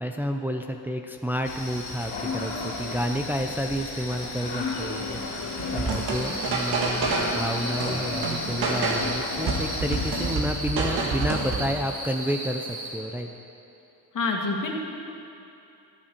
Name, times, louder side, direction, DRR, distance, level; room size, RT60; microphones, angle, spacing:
voice 1, 0.0-13.3, equal, 5° right, 3 dB, 0.6 m, -30 dB
sound 1, 1.4-10.4, left 3 dB, 80° left, 2.7 m, -33 dB
sound 2, 5.6-7.4 7.8-9.1 9.5-11.7, right 3 dB, 75° right, 2.0 m, -28 dB
sound 3, 6.1-12.9, right 1 dB, 50° right, 2.8 m, -36 dB
voice 2, 14.1-14.7, left 3 dB, 60° left, 0 dB, 2.0 m, -26 dB
22.0 x 7.4 x 4.6 m, 2.7 s
cardioid pair, 95°, 37 cm